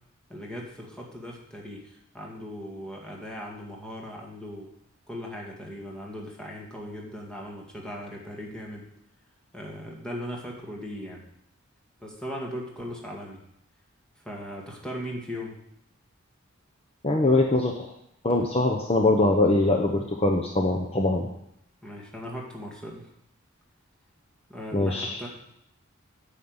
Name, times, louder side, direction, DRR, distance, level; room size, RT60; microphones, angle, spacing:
voice 1, 0.3-4.7 5.1-8.9 9.5-11.2 12.0-13.4 14.2-15.5 21.8-23.1 24.5-25.3, equal, 5° left, -2 dB, 1.9 m, -38 dB
voice 2, 17.0-17.9 18.2-21.3 24.7-25.2, left 2 dB, 30° left, 1 dB, 0.8 m, -23 dB
9.2 x 5.6 x 7.9 m, 0.75 s
head